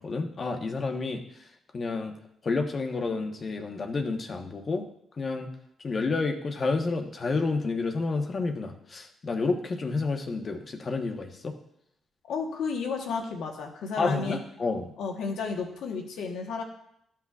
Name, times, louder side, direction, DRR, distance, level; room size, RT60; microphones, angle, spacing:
voice 1, 0.0-1.4 1.7-2.1 2.4-4.9 5.2-5.5 5.8-11.5 14.0-14.9, left 3 dB, 45° left, 5 dB, 1.1 m, -30 dB
voice 2, 12.2-14.4 15.0-16.6, left 5 dB, 80° left, 2 dB, 1.3 m, -32 dB
12.0 x 5.9 x 2.4 m, 0.76 s
supercardioid pair, 65°, 0 cm